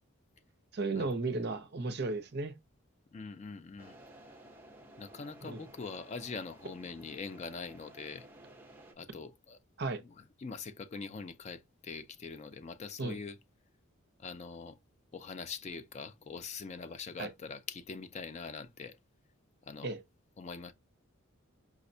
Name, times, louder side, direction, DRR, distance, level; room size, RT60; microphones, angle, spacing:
voice 1, 0.7-2.5 5.4-5.6 9.8-10.0 13.0-13.2 17.2-17.3 19.8-20.0, right 3 dB, 50° right, 0.6 m, -34 dB
voice 2, 3.1-4.0 5.0-8.3 9.0-9.6 10.0-10.1 10.4-13.4 14.2-14.8 15.1-19.0 19.7-19.9 20.4-20.7, left 4 dB, 30° left, 0.3 m, -43 dB
sound 1, 3.8-8.9, right 1 dB, 10° right, 0.8 m, -55 dB
5.0 x 2.1 x 2.6 m
head